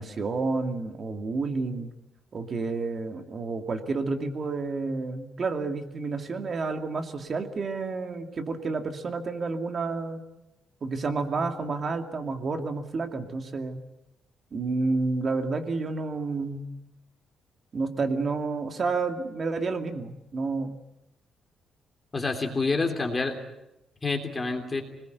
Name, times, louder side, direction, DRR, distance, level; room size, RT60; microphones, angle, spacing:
voice 1, 0.0-1.9 2.3-10.2 10.8-13.8 14.5-16.6 17.7-20.7, right 3 dB, 40° right, 5 dB, 2.5 m, -30 dB
voice 2, 22.1-23.4 24.0-24.8, left 3 dB, 20° left, 3 dB, 3.2 m, -27 dB
26.0 x 20.5 x 8.2 m, 0.92 s
cardioid pair, 145°, 0 cm